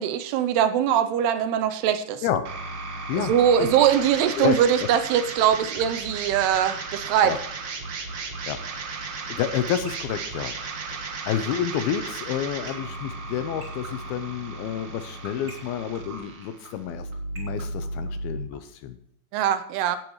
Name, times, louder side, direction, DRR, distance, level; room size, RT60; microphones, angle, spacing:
voice 1, 0.0-2.2 3.2-7.4 19.3-20.0, right 9 dB, 80° right, 10 dB, 2.7 m, -22 dB
sound 1, 2.4-18.5, right 3 dB, 60° right, 1.6 m, -35 dB
voice 2, 4.4-4.9 7.2-7.4 8.5-8.6 9.3-10.5 10.9-17.1 17.4-19.0, left 9 dB, 80° left, 10 dB, 2.4 m, -29 dB
sound 2, 8.9-18.5, right 2 dB, 25° right, 2.0 m, -43 dB
16.0 x 10.5 x 3.1 m, 0.70 s
omnidirectional pair, 4.8 m